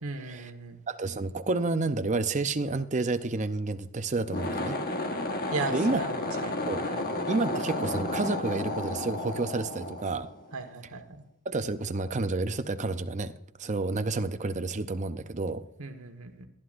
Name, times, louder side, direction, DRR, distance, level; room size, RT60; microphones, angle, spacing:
voice 1, 0.0-0.8 5.5-7.1 10.5-11.2 15.8-16.5, right 3 dB, 75° right, 6 dB, 1.4 m, -37 dB
voice 2, 0.9-4.8 5.7-6.0 6.7-6.8 7.3-10.3 11.5-13.3 13.6-15.6, right 3 dB, 35° right, 10 dB, 0.6 m, -30 dB
sound 1, 4.2-10.7, left 2 dB, 45° left, 1.3 m, -32 dB
19.0 x 11.5 x 2.6 m, 0.74 s
head